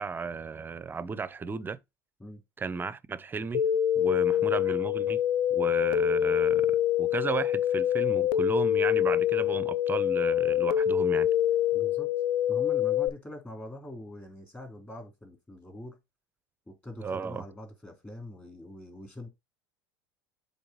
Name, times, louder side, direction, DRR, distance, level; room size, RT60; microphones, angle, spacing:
voice 1, 0.0-1.8 2.6-3.6 4.0-5.2 5.5-11.3 17.0-17.4, right 5 dB, 20° right, 0.6 m, -34 dB
sound 1, 3.5-13.1, left 10 dB, 70° left, 0.6 m, -25 dB
voice 2, 11.7-12.1 12.5-16.0 16.7-19.3, left 1 dB, 15° left, 3.0 m, -43 dB
7.8 x 3.6 x 4.0 m
hypercardioid pair, 95°, 10 cm